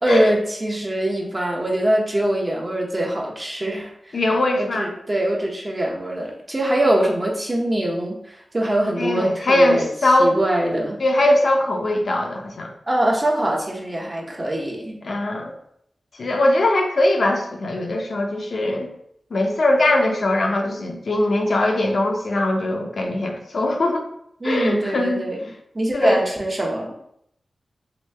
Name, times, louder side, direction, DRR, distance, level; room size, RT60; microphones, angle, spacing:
voice 1, 0.0-4.2 4.6-9.9 10.2-11.0 12.9-15.0 24.4-25.4 25.7-26.9, right 1 dB, 35° right, -1 dB, 0.8 m, -23 dB
voice 2, 4.1-4.9 9.0-10.4 11.0-12.7 15.0-15.5 16.2-18.9 19.3-24.0 24.4-25.2 25.9-26.2, left 1 dB, 70° left, 1 dB, 0.6 m, -20 dB
2.9 x 2.7 x 3.3 m, 0.72 s
cardioid pair, 55°, 0 cm